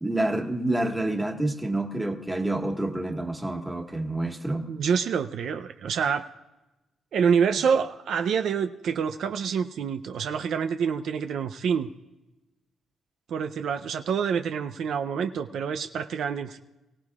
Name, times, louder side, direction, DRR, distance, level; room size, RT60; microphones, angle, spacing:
voice 1, 0.0-4.7, right 1 dB, 10° right, 3 dB, 1.6 m, -28 dB
voice 2, 4.7-6.3 7.1-11.9 13.3-16.6, right 7 dB, 70° right, 7 dB, 0.5 m, -27 dB
23.5 x 16.5 x 2.4 m, 1.0 s
cardioid pair, 90°, 0 cm